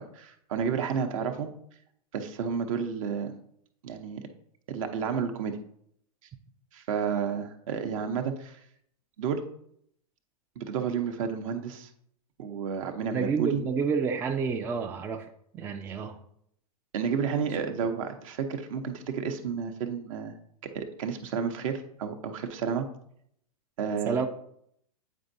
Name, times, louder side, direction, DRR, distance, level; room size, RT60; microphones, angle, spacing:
voice 1, 0.0-1.5 2.1-3.3 3.8-4.2 4.7-5.6 6.7-8.6 9.2-9.4 10.6-11.9 12.4-13.6 16.9-20.3 20.7-22.9 23.8-24.2, right 6 dB, 55° right, 7 dB, 0.8 m, -31 dB
voice 2, 13.1-15.3 15.5-16.2 24.1-24.3, right 5 dB, 10° right, 4 dB, 0.3 m, -29 dB
8.5 x 4.5 x 2.6 m, 0.69 s
hypercardioid pair, 110°, 20 cm